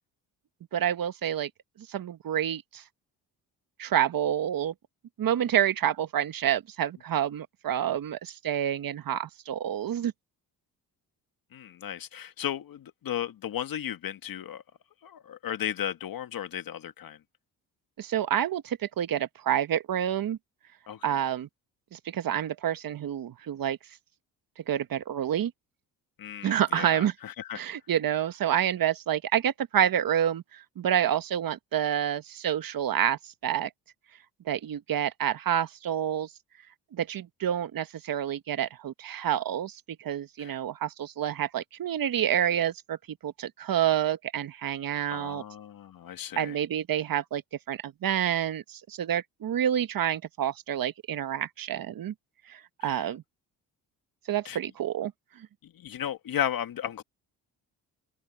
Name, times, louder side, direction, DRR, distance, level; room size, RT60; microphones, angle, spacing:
voice 1, 0.7-1.5 1.9-2.8 3.8-4.7 5.2-10.1 18.0-20.4 21.0-21.5 21.9-23.8 24.7-25.5 26.4-27.1 27.5-33.7 34.4-36.3 36.9-43.0 43.2-45.4 46.4-47.4 47.7-52.1 52.5-53.2 54.3-55.1 55.4-55.5, right 10 dB, 55° right, 1.5 m, -28 dB
voice 2, 11.5-14.6 15.0-17.2 20.9-21.2 26.2-27.6 40.4-40.6 45.1-46.6 52.8-53.1 54.4-54.6 55.6-57.0, left 10 dB, 60° left, 1.6 m, -35 dB
open air
supercardioid pair, 60°, 40 cm